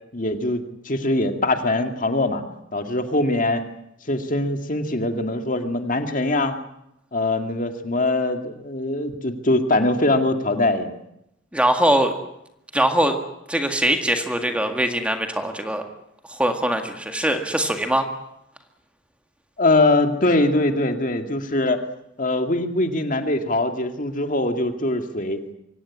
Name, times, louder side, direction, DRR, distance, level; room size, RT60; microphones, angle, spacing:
voice 1, 0.1-2.4 2.7-3.6 4.1-6.6 7.1-10.9 19.6-21.8 22.2-25.4, left 2 dB, 40° left, 6 dB, 2.1 m, -22 dB
voice 2, 11.5-12.1 12.7-13.2 13.5-15.8 16.3-18.1, right 1 dB, 5° right, 5 dB, 1.8 m, -21 dB
24.5 x 17.0 x 9.8 m, 0.82 s
head